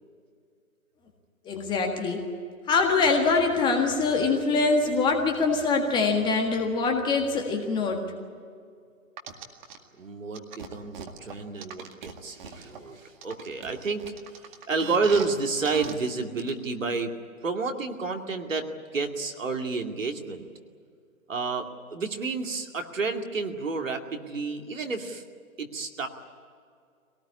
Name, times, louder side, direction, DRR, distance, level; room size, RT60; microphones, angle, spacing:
voice 1, 1.4-2.2 2.7-8.0, left 4 dB, 10° left, 3 dB, 1.6 m, -24 dB
sound 1, 9.2-9.8 10.3-12.8 13.2-15.3 15.6-15.9 16.4-16.5, right 7 dB, 35° right, 2.1 m, -39 dB
voice 2, 10.0-14.1 14.7-17.1 17.4-20.5 21.3-25.2 25.6-26.1, right 4 dB, 65° right, 4 dB, 2.5 m, -30 dB
23.5 x 18.5 x 9.8 m, 2.2 s
figure-of-eight pair, 135°, 42 cm